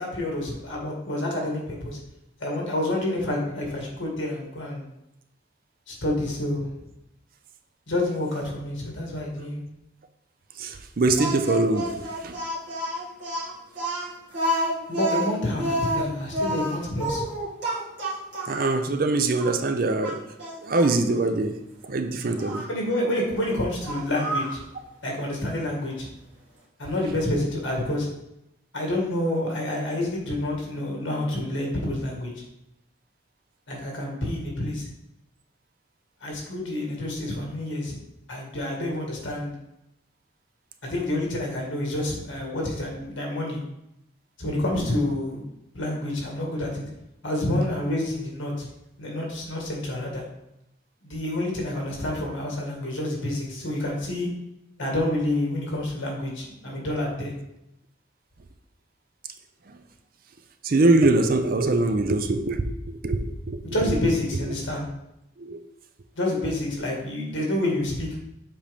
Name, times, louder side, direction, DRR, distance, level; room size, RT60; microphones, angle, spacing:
voice 1, 0.0-2.0 2.4-4.8 5.9-6.7 7.9-9.6 14.9-17.2 22.7-24.6 25.0-26.1 26.8-28.1 28.7-32.3 33.7-34.9 36.2-37.9 38.3-39.5 40.8-43.6 44.4-45.4 45.7-46.9 47.2-48.7 49.0-50.2 51.0-54.3 54.8-57.3 63.6-64.9 66.2-68.1, left 1 dB, 75° left, -2 dB, 2.0 m, -28 dB
voice 2, 10.6-11.9 12.2-12.3 18.5-20.2 20.7-21.6 21.8-22.6 60.6-62.6 63.0-63.2 63.5-63.6 65.4-65.6, right 2 dB, 45° right, 8 dB, 0.5 m, -22 dB
Speech, 11.2-18.7 19.4-19.5 20.0-21.0 22.4-22.7 23.8-24.6, equal, 70° right, 2.5 m, -29 dB
7.3 x 4.2 x 3.5 m, 0.85 s
head